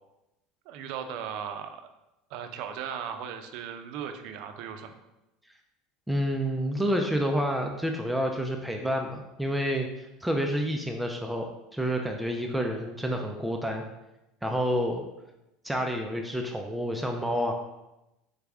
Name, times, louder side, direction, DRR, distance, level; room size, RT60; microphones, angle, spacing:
voice 1, 0.7-1.9 2.3-4.9, right 8 dB, 65° right, 7 dB, 0.5 m, -37 dB
voice 2, 6.1-13.8 14.4-15.0 15.6-17.5, equal, 5° right, 2 dB, 0.4 m, -29 dB
4.0 x 3.5 x 3.5 m, 0.93 s
supercardioid pair, 135°, 0 cm